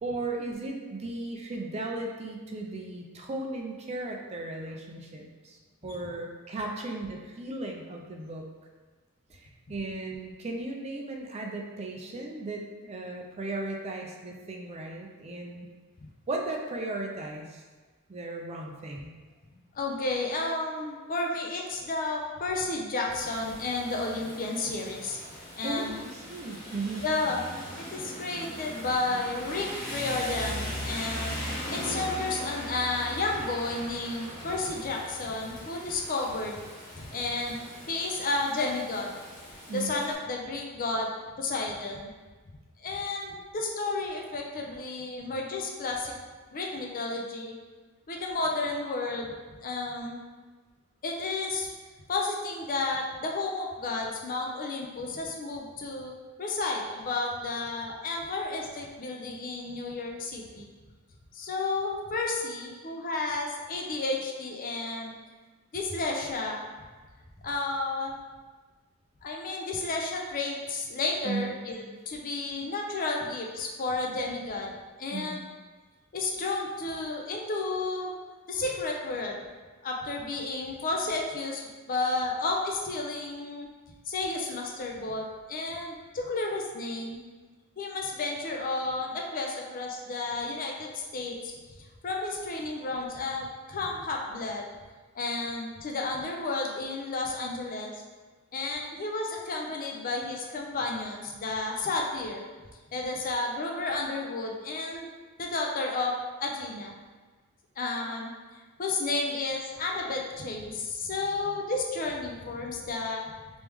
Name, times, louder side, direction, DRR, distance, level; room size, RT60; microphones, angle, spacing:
voice 1, 0.0-8.4 9.3-15.7 16.3-17.6 18.1-19.1 25.6-27.1 28.5-28.6 33.0-33.1 37.4-37.6 38.1-38.3 39.7-39.9 45.1-45.2 59.7-59.8 62.8-62.9 71.2-71.5 72.6-72.7 75.1-75.4 85.7-85.9 95.4-95.6 98.8-98.9 109.3-109.4, right 2 dB, 30° right, 1 dB, 0.4 m, -36 dB
voice 2, 19.7-25.2 25.5-26.0 27.0-27.4 27.8-31.4 31.7-36.6 37.0-37.6 37.9-39.1 39.7-41.1 41.4-42.1 42.8-46.1 46.5-47.5 48.1-49.3 49.6-50.2 51.0-51.7 52.1-60.7 61.3-65.1 65.7-66.6 67.4-68.2 69.2-74.7 75.0-75.4 76.1-78.1 78.5-79.4 79.8-81.6 81.9-83.7 84.1-87.2 87.8-91.4 92.0-94.7 95.1-98.0 98.5-102.4 102.9-105.1 105.4-106.1 106.4-106.9 107.8-108.3 108.8-113.2, left 3 dB, 40° left, 0 dB, 0.5 m, -32 dB
Rain, 23.1-40.1, equal, 20° left, 1.1 m, -40 dB
3.2 x 3.0 x 3.4 m, 1.3 s
head